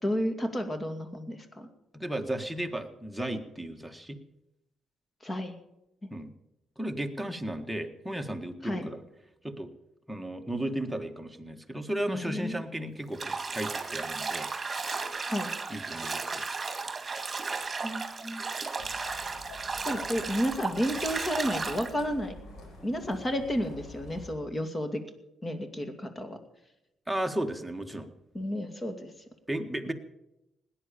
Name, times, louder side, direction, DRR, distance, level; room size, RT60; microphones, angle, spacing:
voice 1, 0.0-1.7 5.2-5.5 8.6-8.9 12.1-12.6 15.3-15.5 17.8-18.4 19.8-22.3 22.8-25.0 25.4-26.4 28.3-29.1, equal, 25° left, 7 dB, 2.4 m, -32 dB
voice 2, 1.9-4.2 6.1-6.3 6.8-9.0 9.4-9.7 10.1-14.5 15.7-16.4 27.1-28.1 29.5-29.9, right 1 dB, 5° right, 4 dB, 1.7 m, -34 dB
Bathtub (filling or washing), 13.1-21.9, right 4 dB, 30° right, 2.1 m, -34 dB
sound 1, 18.8-24.3, left 2 dB, 70° left, 4.2 m, -47 dB
17.0 x 10.0 x 7.0 m, 0.89 s
cardioid pair, 75°, 0 cm